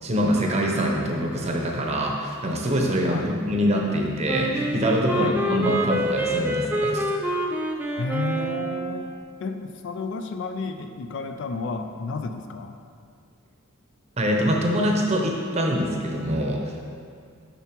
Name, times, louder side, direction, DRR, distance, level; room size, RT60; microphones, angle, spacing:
voice 1, 0.0-7.1 14.2-16.8, equal, 30° right, 0 dB, 0.7 m, -24 dB
Wind instrument woodwind instrument, 4.3-9.0, right 1 dB, 10° right, 0.4 m, -26 dB
voice 2, 7.9-9.1 9.4-12.8, left 4 dB, 60° left, 7 dB, 0.4 m, -31 dB
6.9 x 5.7 x 3.0 m, 2.2 s
head